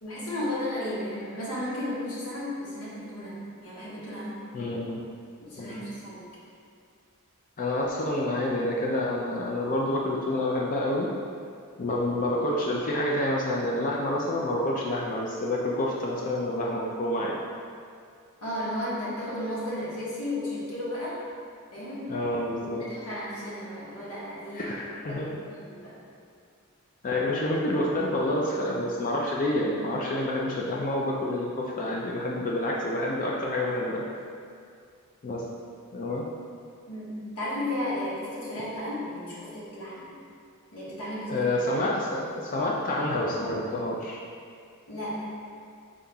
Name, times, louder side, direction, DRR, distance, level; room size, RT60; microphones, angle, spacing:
voice 1, 0.0-4.3 5.4-6.2 18.4-21.2 21.7-22.2 22.6-24.7 25.1-26.0 36.9-40.1 40.7-41.5 44.9-45.2, left 1 dB, 80° left, -8 dB, 1.3 m, -34 dB
voice 2, 4.5-5.0 5.6-5.9 7.6-11.1 11.8-17.4 22.1-22.8 24.5-25.3 27.0-34.0 35.2-35.4 35.9-36.3 41.3-44.2, left 1 dB, 35° left, -3 dB, 0.4 m, -28 dB
5.5 x 3.7 x 2.3 m, 2.3 s
head